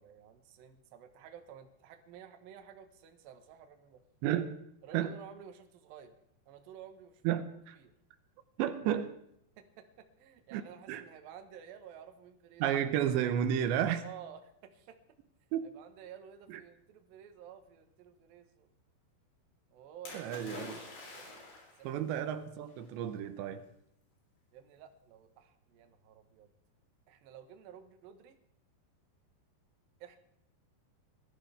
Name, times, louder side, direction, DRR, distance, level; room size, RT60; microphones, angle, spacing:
voice 1, 0.0-4.0 4.8-6.2 6.5-7.2 7.8-7.9 9.6-13.3 14.0-15.0 15.6-18.7 19.7-20.3 20.5-21.9 24.5-26.5 27.1-28.4 30.0-30.2, right 8 dB, 65° right, 7 dB, 2.7 m, -52 dB
voice 2, 4.2-4.6 4.9-5.1 7.2-7.8 8.6-9.1 10.5-10.6 10.9-11.0 12.6-14.0 15.5-15.7 16.5-16.6 20.1-20.8 21.8-23.6, right 10 dB, 85° right, 10 dB, 3.2 m, -32 dB
Splash splatter, 20.1-21.9 22.8-22.9, left 2 dB, 80° left, 5.9 m, -46 dB
20.5 x 14.0 x 3.4 m, 0.75 s
omnidirectional pair, 5.1 m